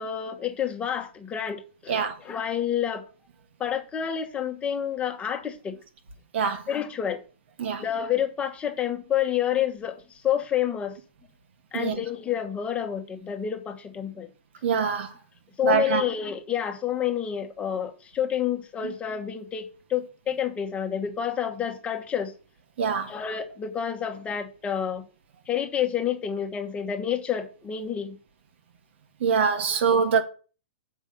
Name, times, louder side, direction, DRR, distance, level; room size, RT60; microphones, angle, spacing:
voice 1, 0.0-3.0 3.6-5.8 6.7-7.2 7.8-10.0 10.2-11.0 11.7-14.3 15.6-22.3 23.1-25.0 25.5-28.1, left 9 dB, 20° left, 1.2 m, -29 dB
voice 2, 1.9-2.2 6.3-6.6 7.6-7.8 11.7-12.0 14.6-15.1 15.6-16.0 18.8-18.9 22.8-23.1 29.2-30.2, right 6 dB, 65° right, 1.5 m, -24 dB
7.2 x 5.4 x 5.3 m
hypercardioid pair, 140°, 7 cm